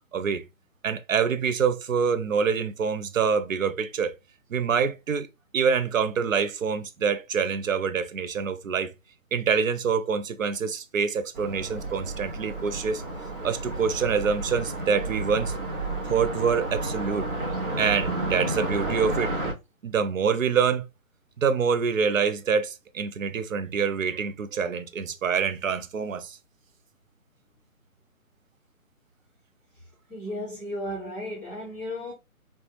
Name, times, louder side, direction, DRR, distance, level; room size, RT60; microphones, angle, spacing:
voice 1, 0.1-0.5 0.8-4.2 4.5-5.3 5.5-8.9 9.3-13.0 13.4-15.5 16.0-17.3 17.8-19.4 19.8-20.9 21.4-26.4, right 6 dB, 65° right, 0.6 m, -26 dB
Car passing by, 11.3-19.5, right 2 dB, 35° right, 1.1 m, -31 dB
voice 2, 29.7-32.1, left 1 dB, ahead, 0.7 m, -35 dB
3.3 x 2.1 x 2.8 m
figure-of-eight pair, 155°, 43 cm